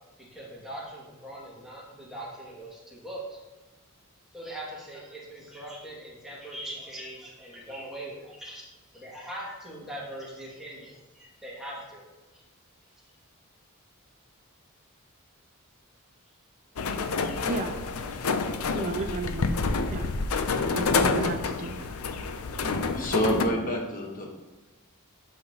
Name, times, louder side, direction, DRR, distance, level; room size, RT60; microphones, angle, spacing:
voice 1, 0.2-3.4 4.3-8.7 8.9-12.0 12.3-12.4 18.2-18.3 18.9-19.0, right 1 dB, ahead, -6 dB, 2.1 m, -41 dB
sound 1, 16.8-23.5, left 4 dB, 80° left, 0.6 m, -28 dB
voice 2, 18.7-20.1 20.7-22.3, right 3 dB, 35° right, 5 dB, 0.4 m, -34 dB
voice 3, 22.6-24.3, equal, 40° left, 0 dB, 1.2 m, -28 dB
11.5 x 5.7 x 2.9 m, 1.1 s
head